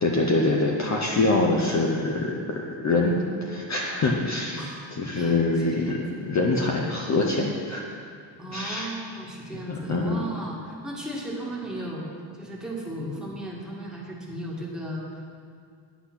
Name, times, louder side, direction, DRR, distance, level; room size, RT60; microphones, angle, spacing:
voice 1, 0.0-7.8 8.5-8.9 9.7-10.2, left 2 dB, 35° left, -1 dB, 0.8 m, -25 dB
voice 2, 4.5-4.9 5.1-5.4 5.8-6.0 8.4-12.1 12.4-15.2, right 1 dB, ahead, -4 dB, 1.6 m, -35 dB
9.9 x 8.3 x 5.9 m, 2.2 s
cardioid pair, 170°, 49 cm